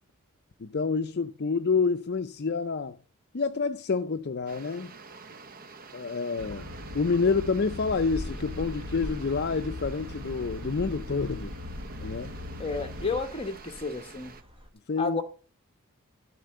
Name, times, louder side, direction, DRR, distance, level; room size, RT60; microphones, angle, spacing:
voice 1, 0.6-3.0 3.3-4.9 5.9-6.7 6.9-11.5 12.0-12.3 14.9-15.2, left 4 dB, 50° left, 0.5 m, -28 dB
sound 1, 4.5-14.4, right 4 dB, 40° right, 0.7 m, -49 dB
sound 2, 6.4-13.2, left 1 dB, 60° right, 1.2 m, -40 dB
sound 3, 7.9-14.7, equal, 25° right, 1.3 m, -43 dB
voice 2, 12.6-14.4 15.0-15.2, left 4 dB, 25° left, 1.1 m, -31 dB
12.0 x 4.5 x 7.7 m
head